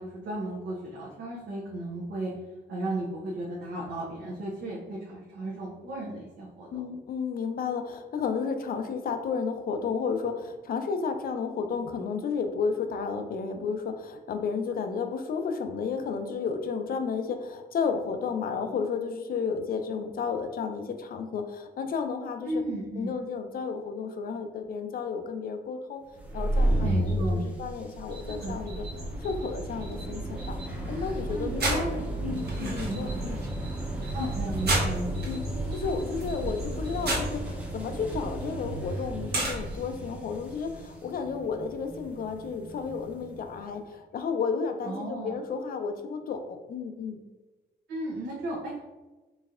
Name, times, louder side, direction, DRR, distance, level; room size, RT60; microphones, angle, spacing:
voice 1, 0.0-2.3 2.7-6.8 22.4-23.2 26.8-27.7 28.3-28.9 31.3-33.3 34.1-35.4 44.8-45.3 47.9-48.9, right 1 dB, 85° right, -6 dB, 0.8 m, -35 dB
voice 2, 6.7-22.5 23.0-26.0 26.3-28.8 29.2-31.8 32.2-33.4 34.2-34.3 35.2-35.4 35.7-47.2, left 5 dB, 55° left, 7 dB, 0.4 m, -32 dB
sound 1, 26.1-43.5, right 1 dB, 10° right, 0.6 m, -33 dB
sound 2, 28.0-39.8, right 1 dB, 65° right, 1.0 m, -35 dB
4.1 x 3.2 x 2.4 m, 1.2 s
cardioid pair, 130°, 18 cm